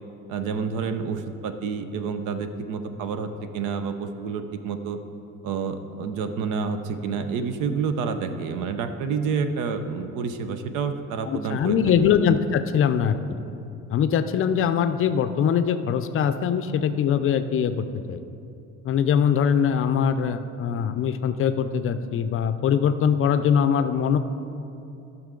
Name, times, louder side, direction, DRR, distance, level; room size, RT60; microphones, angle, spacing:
voice 1, 0.3-5.0 5.4-11.8, right 5 dB, 85° right, 9 dB, 0.7 m, -29 dB
voice 2, 11.3-13.4 13.9-18.2 18.8-24.2, left 7 dB, 45° left, 10 dB, 0.4 m, -22 dB
14.0 x 6.1 x 3.8 m, 2.8 s
cardioid pair, 135°, 30 cm